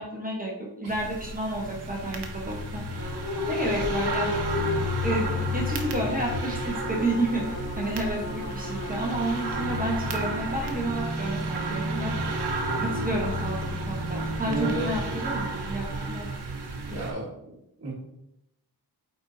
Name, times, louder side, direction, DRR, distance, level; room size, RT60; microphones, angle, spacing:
voice 1, 0.0-3.1 3.5-4.3 5.0-12.1 12.8-16.3, right 1 dB, 20° right, -2 dB, 1.0 m, -31 dB
sound 1, 0.9-17.1, right 1 dB, 85° right, 0.9 m, -31 dB
sound 2, 3.0-10.0 11.7-12.8, left 4 dB, 50° left, 1.0 m, -35 dB
voice 2, 14.5-14.9 16.8-17.9, right 2 dB, 40° right, -7 dB, 1.5 m, -32 dB
8.7 x 4.1 x 2.7 m, 0.82 s
wide cardioid pair, 165°, 39 cm